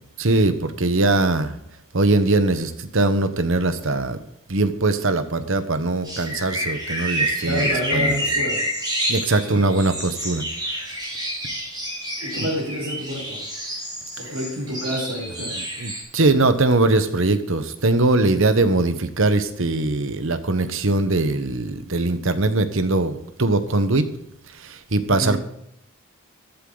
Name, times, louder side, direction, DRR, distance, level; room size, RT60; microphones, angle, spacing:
voice 1, 0.2-1.6 1.9-4.2 4.5-8.2 9.1-10.4 12.4-12.5 14.2-14.3 15.5-24.1 24.5-25.4, right 2 dB, 60° right, 10 dB, 1.1 m, -21 dB
sound 1, 6.0-16.0, equal, 20° right, 6.6 m, -28 dB
voice 2, 7.4-8.6 9.5-9.8 12.2-13.4 14.2-15.6 25.1-25.4, equal, 80° right, -7 dB, 5.1 m, -29 dB
14.0 x 12.0 x 3.9 m, 0.76 s
head